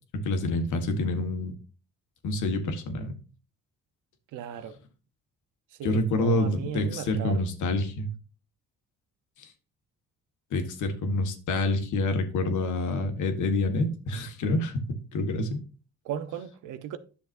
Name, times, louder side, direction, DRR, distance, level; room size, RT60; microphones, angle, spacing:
voice 1, 0.1-1.6 2.2-3.2 5.8-8.1 10.5-15.6, left 2 dB, 75° left, 1.7 m, -27 dB
voice 2, 4.3-4.8 5.8-7.4 16.0-17.0, right 9 dB, 85° right, 0.9 m, -36 dB
10.5 x 7.0 x 2.6 m
cardioid pair, 90°, 30 cm